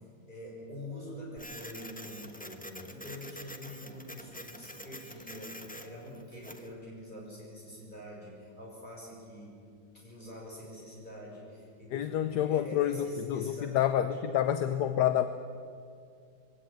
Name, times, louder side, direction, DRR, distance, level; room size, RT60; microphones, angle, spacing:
voice 1, 0.3-9.6 9.9-14.4, left 1 dB, 25° left, -3 dB, 6.8 m, -45 dB
Printer, 1.4-6.7, equal, 5° left, 0.9 m, -46 dB
voice 2, 11.9-13.0 13.3-15.3, left 11 dB, 70° left, 10 dB, 1.3 m, -28 dB
21.5 x 16.5 x 9.2 m, 2.3 s
omnidirectional pair, 1.9 m